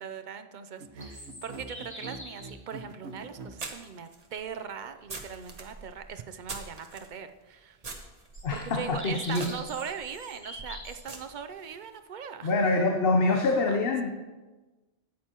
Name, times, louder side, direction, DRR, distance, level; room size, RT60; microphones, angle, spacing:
voice 1, 0.0-7.8 8.5-12.5 13.5-13.8, right 6 dB, 55° right, 9 dB, 0.6 m, -40 dB
sound 1, 0.8-3.6, right 3 dB, 90° right, 1.2 m, -43 dB
sound 2, 1.0-2.5 3.6-3.7 8.3-11.0, equal, 15° left, 2.4 m, -44 dB
sound 3, 2.5-2.6 3.6-7.1 7.8-11.8, right 3 dB, 40° right, 1.0 m, -43 dB
voice 2, 8.4-9.5 12.4-14.1, left 3 dB, 65° left, 3 dB, 1.0 m, -25 dB
13.5 x 8.6 x 2.9 m, 1.2 s
omnidirectional pair, 1.1 m